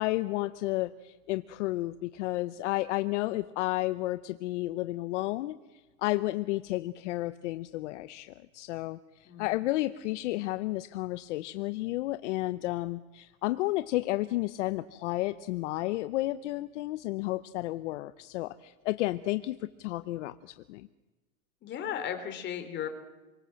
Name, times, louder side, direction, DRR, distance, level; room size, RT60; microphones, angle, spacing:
voice 1, 0.0-20.9, left 18 dB, 55° left, 13 dB, 0.9 m, -32 dB
voice 2, 21.6-22.9, left 9 dB, 25° left, 7 dB, 3.4 m, -35 dB
29.0 x 24.0 x 7.7 m, 1.2 s
supercardioid pair, 155°, 43 cm